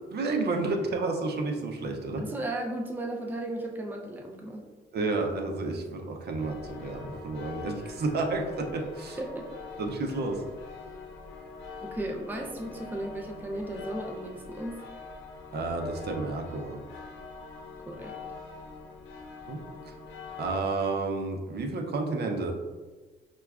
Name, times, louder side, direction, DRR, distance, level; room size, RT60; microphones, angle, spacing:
voice 1, 0.1-2.2 4.9-9.2 9.8-10.4 15.5-16.8 19.5-19.9 20.4-22.5, right 3 dB, 55° right, 3 dB, 0.6 m, -31 dB
voice 2, 2.2-4.6 9.2-9.5 11.8-14.8 17.9-18.1, right 1 dB, 10° right, 1 dB, 0.4 m, -35 dB
sound 1, 6.4-20.5, left 4 dB, 80° left, 0.7 m, -44 dB
5.8 x 2.2 x 2.3 m, 1.3 s
cardioid pair, 90°, 20 cm